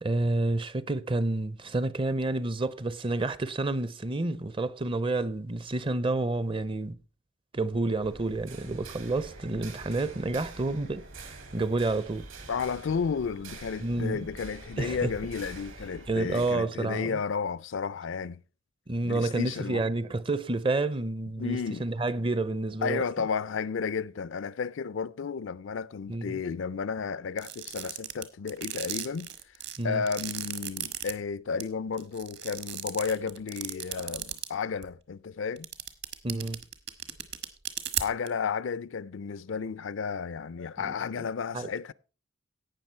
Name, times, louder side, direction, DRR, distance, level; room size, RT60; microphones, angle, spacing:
voice 1, 0.0-7.0 7.5-12.3 13.8-14.2 14.8-15.1 16.1-17.2 18.9-23.0 26.1-26.4 29.8-30.0 36.2-36.6 40.8-41.3 41.5-41.7, right 2 dB, 25° right, 0.5 m, -29 dB
sound 1, 8.0-16.5, right 2 dB, 75° right, 2.9 m, -45 dB
voice 2, 12.5-18.4 19.0-19.8 21.4-21.9 22.8-29.3 29.8-35.7 38.0-41.9, left 5 dB, 65° left, 0.4 m, -32 dB
sound 2, 27.4-31.1 31.6-31.7 32.0-34.5 34.8-34.9 35.6-38.3, right 11 dB, 55° right, 1.3 m, -35 dB
16.5 x 6.0 x 4.4 m
head